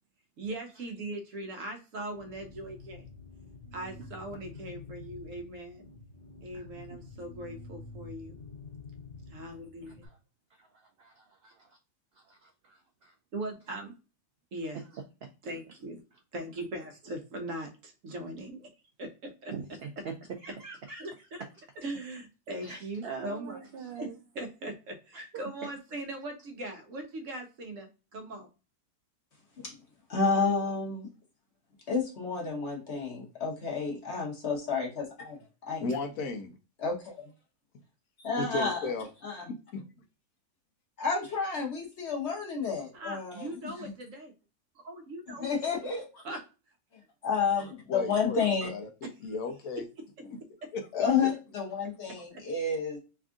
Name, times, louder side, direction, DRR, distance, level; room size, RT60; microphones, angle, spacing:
voice 1, 0.4-3.1 3.7-5.9 6.4-8.4 9.3-10.0 13.3-13.9 14.5-14.8 15.4-16.0 16.3-18.7 19.0-19.5 21.0-21.2 21.8-28.5 35.9-36.0 42.9-44.3 44.8-45.5 46.2-46.4 49.0-49.3 52.3-52.4, right 1 dB, 65° right, 1.1 m, -40 dB
sound 1, 2.1-10.1, left 3 dB, 20° left, 1.3 m, -48 dB
voice 2, 10.6-11.8 12.3-13.1 14.9-15.0 19.5-20.1 20.4-21.0 22.6-24.1 25.1-25.3 25.6-25.7, right 5 dB, 80° right, 0.5 m, -43 dB
voice 3, 30.1-31.1 31.9-35.4 35.7-35.8 36.8-37.1 38.2-38.9 39.2-39.5 41.0-43.7 45.4-46.2 47.2-48.7 50.9-53.0, left 5 dB, 50° left, 1.3 m, -30 dB
voice 4, 35.8-36.5 38.4-39.1 39.7-39.8 47.9-49.9 50.7-51.0, left 3 dB, 70° left, 1.0 m, -35 dB
3.4 x 2.4 x 3.5 m
omnidirectional pair, 1.6 m